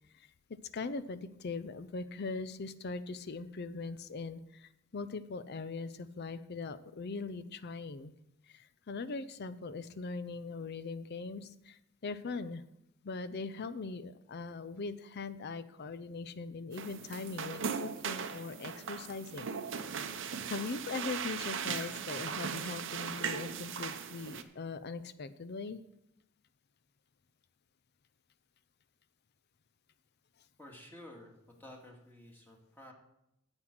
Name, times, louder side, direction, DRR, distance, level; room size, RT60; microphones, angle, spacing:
voice 1, 0.7-8.1 8.5-12.6 13.0-19.5 20.4-25.8, left 4 dB, 50° left, 14 dB, 0.5 m, -41 dB
sound 1, 16.7-24.4, right 6 dB, 60° right, 0.7 m, -38 dB
voice 2, 30.6-32.9, left 1 dB, 10° left, -1 dB, 2.0 m, -52 dB
9.7 x 8.0 x 6.0 m, 0.84 s
head